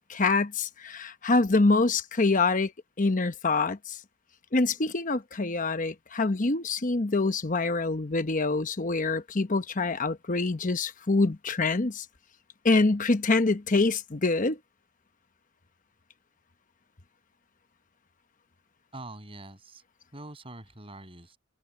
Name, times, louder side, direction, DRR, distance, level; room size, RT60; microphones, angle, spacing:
voice 1, 0.0-2.7 3.0-4.0 4.5-12.0 12.6-14.6, left 3 dB, 40° left, 1.0 m, -25 dB
voice 2, 18.9-19.8 20.1-21.4, right 2 dB, 30° right, 7.6 m, -44 dB
head